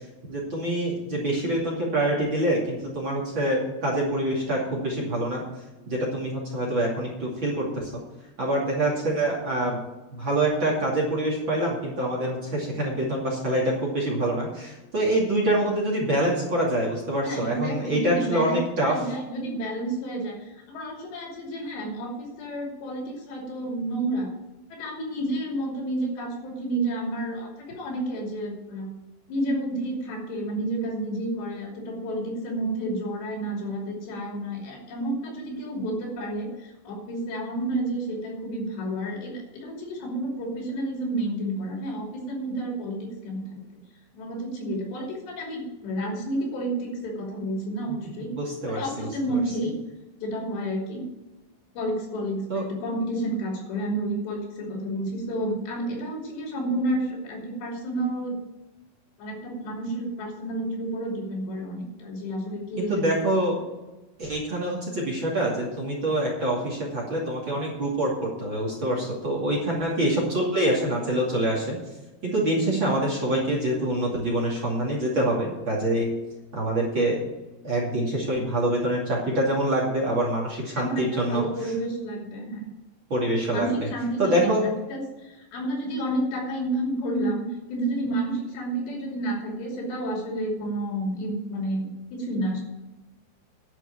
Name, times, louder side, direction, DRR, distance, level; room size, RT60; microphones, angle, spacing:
voice 1, 0.3-5.4 5.9-8.0 8.4-9.8 10.2-19.0 48.3-49.1 52.5-52.6 62.8-63.6 64.2-71.8 72.2-76.1 76.5-77.2 77.6-81.7 83.1-83.7 84.2-84.6, right 1 dB, 35° right, -2 dB, 2.6 m, -25 dB
voice 2, 17.2-24.3 24.7-28.9 29.3-43.6 44.1-48.3 48.7-49.7 50.2-51.1 51.7-58.4 59.2-63.1 80.8-82.7 83.5-92.6, right 1 dB, 85° left, 0 dB, 5.0 m, -30 dB
11.0 x 6.2 x 9.2 m, 1.1 s
omnidirectional pair, 4.8 m